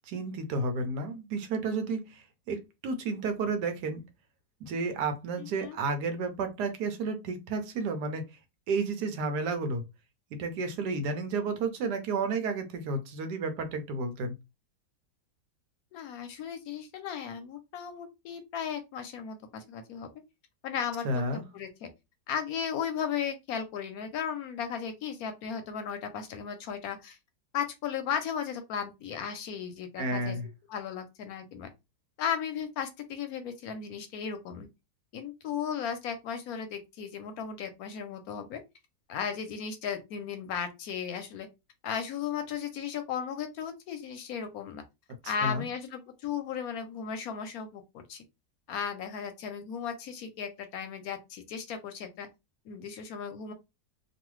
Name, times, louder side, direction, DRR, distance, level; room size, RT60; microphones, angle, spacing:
voice 1, 0.1-4.0 4.6-8.3 8.7-9.8 10.3-14.3 21.0-21.4 30.0-30.5 45.4-45.7, right 3 dB, 80° right, 1.3 m, -31 dB
voice 2, 5.4-5.8 15.9-20.1 20.6-21.1 21.3-21.9 22.3-27.2 27.5-30.4 30.7-31.7 32.2-34.7 35.1-38.6 39.1-41.5 41.8-44.8 45.2-47.8 48.1-48.2 48.7-52.3 52.7-53.5, left 7 dB, 70° left, 1.0 m, -35 dB
3.1 x 2.3 x 3.0 m
omnidirectional pair, 1.8 m